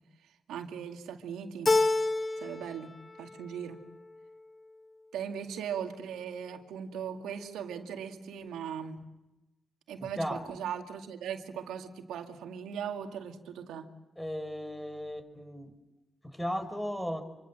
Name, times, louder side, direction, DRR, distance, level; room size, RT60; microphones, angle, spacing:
voice 1, 0.5-1.7 2.4-2.9 3.2-3.8 5.1-9.0 9.9-13.9, right 8 dB, 85° right, 4 dB, 2.1 m, -39 dB
Keyboard (musical), 1.7-2.8 3.1-3.8, left 2 dB, 35° left, 1.1 m, -28 dB
voice 2, 10.0-10.4 14.2-15.7 16.2-17.2, equal, 10° left, 9 dB, 5.1 m, -36 dB
27.0 x 25.0 x 7.6 m, 0.99 s
supercardioid pair, 45°, 0 cm